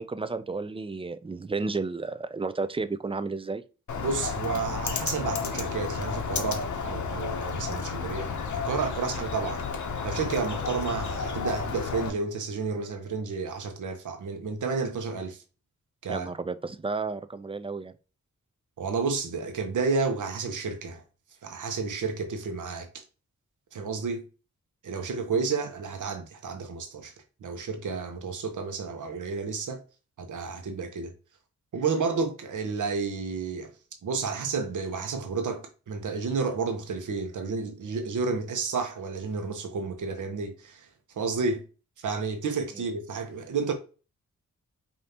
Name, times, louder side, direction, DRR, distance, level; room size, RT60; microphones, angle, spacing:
voice 1, 0.0-3.6 16.1-17.9, right 3 dB, 20° right, 0.4 m, -32 dB
Bird, 3.9-12.1, left 5 dB, 70° left, 0.8 m, -32 dB
voice 2, 4.0-9.7 10.0-15.4 16.0-16.3 18.8-21.0 21.4-23.0 23.7-24.3 24.8-27.1 27.4-29.8 30.2-31.1 31.7-33.7 34.0-40.9 41.1-41.6 42.0-43.7, right 4 dB, 75° right, 1.0 m, -31 dB
5.1 x 2.7 x 2.8 m
cardioid pair, 65°, 31 cm